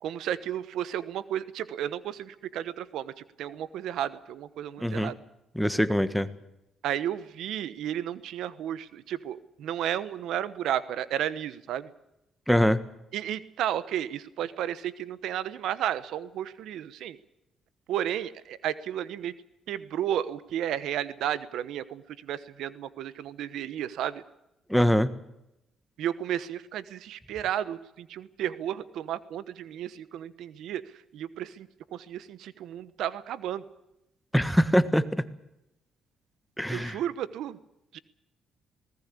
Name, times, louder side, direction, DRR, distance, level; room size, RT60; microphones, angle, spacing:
voice 1, 0.0-3.1 3.4-5.1 6.8-11.9 13.1-17.2 17.9-19.3 19.7-24.2 26.0-30.8 31.1-33.6 36.7-37.6 37.9-38.0, right 11 dB, 80° right, 16 dB, 1.1 m, -33 dB
voice 2, 4.8-5.1 5.5-6.3 12.5-12.8 24.7-25.1 34.3-35.2 36.6-37.0, equal, ahead, 12 dB, 1.5 m, -23 dB
20.0 x 18.5 x 8.5 m, 0.86 s
cardioid pair, 90°, 0 cm